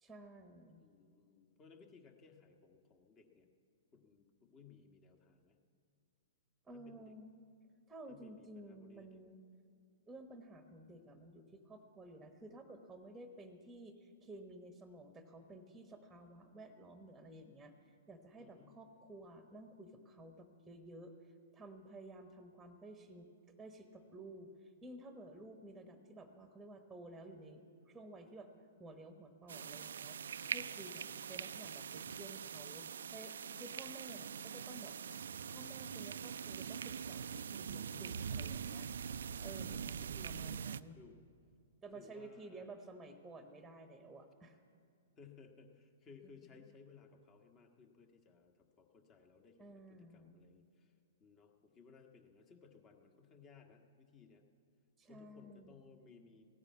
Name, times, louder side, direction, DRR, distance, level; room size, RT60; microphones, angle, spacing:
voice 1, 0.0-0.8 6.7-7.3 7.9-9.4 10.1-23.3 23.6-28.5 28.8-34.9 35.4-38.9 39.4-41.0 41.8-44.6 49.6-50.4 55.0-55.8, right 1 dB, 5° right, 6 dB, 1.1 m, -53 dB
voice 2, 0.8-3.5 3.9-5.6 6.7-7.2 8.1-9.2 18.4-18.7 30.9-31.2 39.3-41.2 41.9-42.7 45.2-50.9 51.2-54.4 55.1-56.4, left 5 dB, 25° left, 4 dB, 1.5 m, -61 dB
sound 1, 29.5-40.8, right 7 dB, 70° right, 0.4 m, -43 dB
16.0 x 9.6 x 8.4 m, 2.3 s
hypercardioid pair, 115°, 0 cm